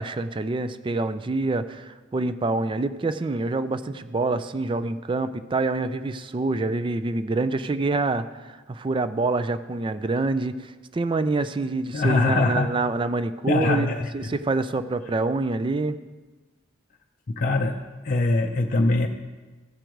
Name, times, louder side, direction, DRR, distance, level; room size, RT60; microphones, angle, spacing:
voice 1, 0.0-16.0, right 3 dB, 25° right, 12 dB, 0.4 m, -26 dB
voice 2, 11.9-12.7 13.5-14.3 17.3-17.8 18.0-19.1, left 2 dB, 45° left, 2 dB, 0.5 m, -22 dB
15.0 x 5.0 x 4.6 m, 1.3 s
head